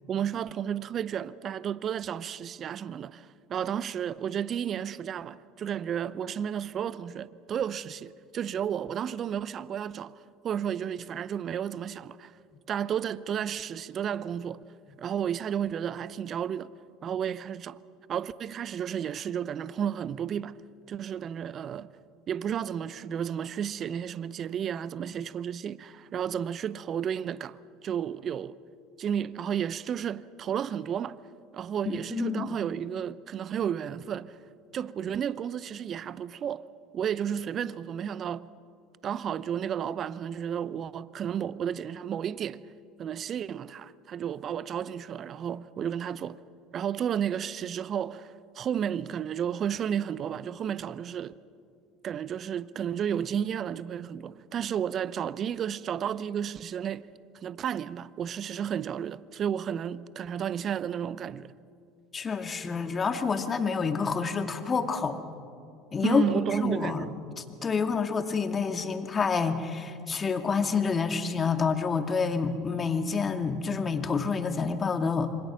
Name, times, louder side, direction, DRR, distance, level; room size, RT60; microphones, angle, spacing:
voice 1, 0.1-10.2 10.4-12.3 12.7-14.6 15.0-16.7 17.0-17.8 18.1-20.6 20.9-21.9 22.3-28.6 29.0-31.2 31.5-34.4 34.7-36.6 36.9-38.5 39.0-42.6 43.0-46.4 46.7-51.3 52.0-57.1 57.4-61.5 66.0-67.2, right 8 dB, 45° right, 0.7 m, -32 dB
voice 2, 31.9-32.6 62.1-65.2 65.9-66.2 66.6-67.1 67.6-75.3, left 5 dB, 30° left, 2.3 m, -28 dB
27.0 x 25.0 x 6.3 m
hypercardioid pair, 70°, 0 cm